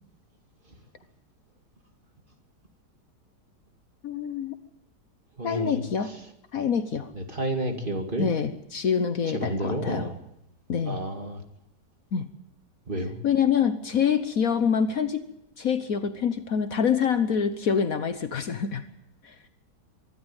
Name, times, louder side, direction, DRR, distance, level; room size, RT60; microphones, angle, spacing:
voice 1, 4.0-4.6 5.4-6.1 6.5-7.1 8.2-10.1 10.7-11.0 12.1-12.3 13.2-15.2 15.6-18.8 19.2-19.3, left 7 dB, 60° left, 10 dB, 1.4 m, -26 dB
voice 2, 5.4-5.8 7.1-8.3 9.2-10.1 10.8-11.4 12.9-13.1, right 1 dB, 30° right, 4 dB, 2.5 m, -30 dB
24.0 x 12.5 x 9.0 m, 0.79 s
omnidirectional pair, 1.8 m